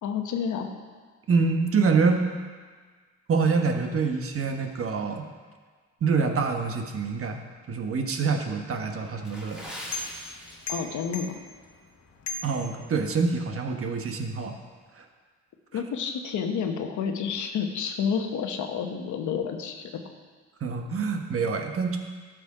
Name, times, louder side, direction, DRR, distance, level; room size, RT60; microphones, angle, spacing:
voice 1, 0.0-0.7 10.7-11.3 15.7-19.9, left 6 dB, 75° left, 5 dB, 1.1 m, -29 dB
voice 2, 1.3-2.3 3.3-5.3 6.0-9.7 12.4-14.5 15.0-15.1 20.6-22.0, right 4 dB, 50° right, 4 dB, 1.2 m, -26 dB
sound 1, 8.7-13.4, left 3 dB, 55° left, 1.3 m, -40 dB
Water / Splash splatter, 9.2-11.1 11.4-11.6 12.2-12.4 12.9-13.0, equal, 5° right, 2.3 m, -41 dB
12.0 x 6.3 x 4.9 m, 1.5 s
cardioid pair, 90°, 30 cm